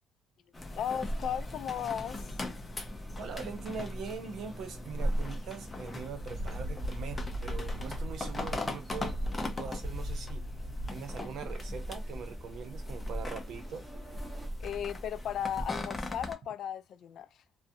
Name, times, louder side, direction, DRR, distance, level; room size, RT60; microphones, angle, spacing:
sound 1, 0.5-16.3, left 1 dB, 20° left, 0.6 m, -38 dB
voice 1, 0.7-2.3 14.6-17.3, left 9 dB, 65° left, 0.3 m, -35 dB
sound 2, 1.7-12.7, equal, 45° right, 1.2 m, -41 dB
voice 2, 3.2-10.4 10.9-13.9, right 6 dB, 70° right, 0.7 m, -42 dB
sound 3, 8.2-14.5, right 2 dB, 20° right, 0.9 m, -57 dB
2.3 x 2.1 x 2.6 m
cardioid pair, 100°, 0 cm